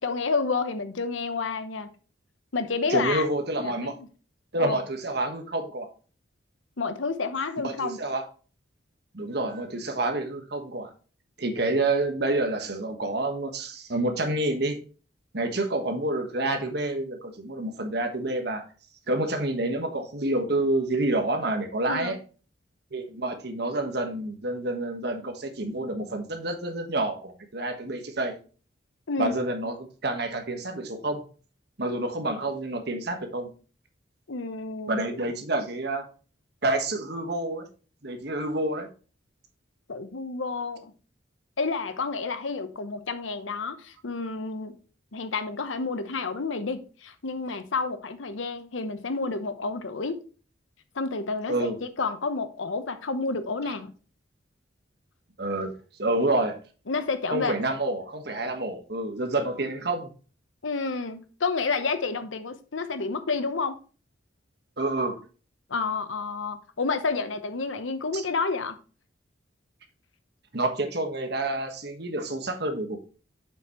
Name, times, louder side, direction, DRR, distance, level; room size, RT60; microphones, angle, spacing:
voice 1, 0.0-1.9 2.5-3.3 3.6-4.1 4.6-4.8 6.8-8.0 21.9-22.2 29.1-29.3 34.3-35.2 39.9-40.9 41.6-44.8 45.1-50.2 50.9-51.5 52.0-53.9 56.9-57.6 60.6-63.8 65.7-68.8, left 4 dB, 85° left, 0.9 m, -30 dB
voice 2, 2.9-3.9 4.5-5.9 7.6-8.2 9.1-10.9 11.4-14.8 15.3-18.7 19.1-22.2 22.9-28.3 29.2-31.2 31.8-33.5 34.9-36.0 36.6-37.7 38.0-38.9 51.5-51.8 55.4-55.7 56.0-56.6 57.3-60.1 64.8-65.2 68.1-68.2 70.5-73.0, right 2 dB, 55° right, 1.4 m, -28 dB
7.0 x 6.0 x 3.0 m
head